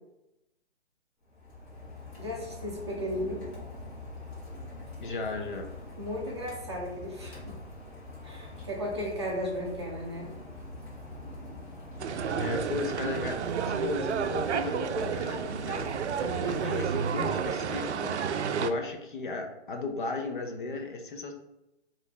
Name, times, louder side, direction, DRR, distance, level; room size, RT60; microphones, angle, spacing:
Rain, 1.2-18.5, left 2 dB, 25° left, 1.3 m, -44 dB
voice 1, 2.2-3.4 6.0-7.6 8.2-10.3 16.2-17.1, equal, 25° right, -2 dB, 0.5 m, -35 dB
voice 2, 5.0-5.7 12.4-16.0 16.5-18.2 18.6-21.3, left 3 dB, 45° left, 3 dB, 0.6 m, -35 dB
sound 1, 12.0-18.7, right 7 dB, 75° right, 0.5 m, -31 dB
3.9 x 2.6 x 3.9 m, 0.91 s
hypercardioid pair, 160°, 35 cm